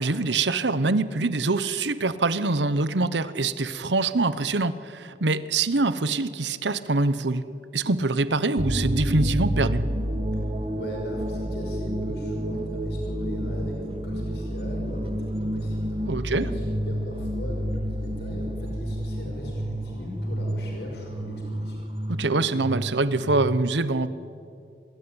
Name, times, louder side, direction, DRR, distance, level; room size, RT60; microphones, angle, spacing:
voice 1, 0.0-7.4 7.7-9.8 16.1-16.4 22.1-24.1, right 3 dB, 90° right, 15 dB, 1.1 m, -24 dB
sound 1, 8.6-23.3, right 1 dB, 30° right, 1.7 m, -30 dB
voice 2, 10.7-21.8, left 1 dB, 70° left, 0 dB, 6.0 m, -38 dB
26.5 x 21.5 x 9.8 m, 2.6 s
head